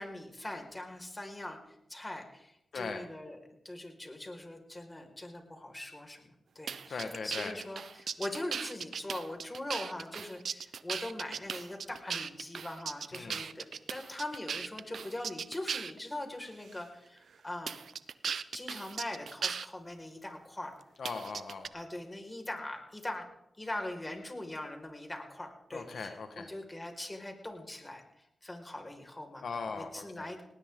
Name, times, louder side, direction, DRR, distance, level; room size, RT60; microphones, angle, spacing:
voice 1, 0.0-1.6 1.9-6.3 6.5-17.8 18.5-20.7 21.7-23.2 23.6-28.0 28.4-29.4 29.7-30.4, left 1 dB, 25° left, 3 dB, 5.0 m, -41 dB
voice 2, 2.7-3.0 6.9-7.5 13.1-13.4 21.0-21.7 25.7-26.5 29.4-30.3, left 4 dB, 75° left, 6 dB, 1.5 m, -39 dB
sound 1, 6.7-16.0 16.7-16.8 17.7-19.7 21.0-21.7, right 6 dB, 75° right, 0.7 m, -38 dB
19.5 x 19.0 x 3.8 m, 0.82 s
cardioid pair, 45°, 0 cm